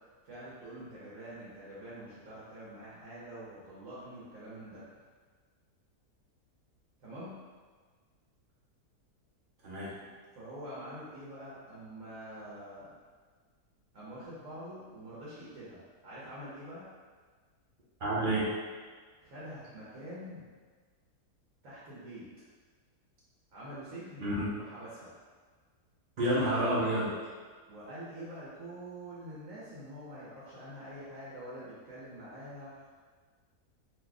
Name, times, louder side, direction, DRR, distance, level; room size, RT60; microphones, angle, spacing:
voice 1, 0.2-5.0 7.0-7.3 10.3-12.9 13.9-16.8 19.2-20.4 21.6-22.2 23.5-25.1 27.7-33.0, right 1 dB, 60° right, -9 dB, 1.2 m, -46 dB
voice 2, 9.6-10.0 18.0-18.5 24.2-24.5 26.2-27.2, right 1 dB, 40° right, -7 dB, 0.8 m, -29 dB
4.2 x 2.7 x 2.3 m, 1.5 s
omnidirectional pair, 1.7 m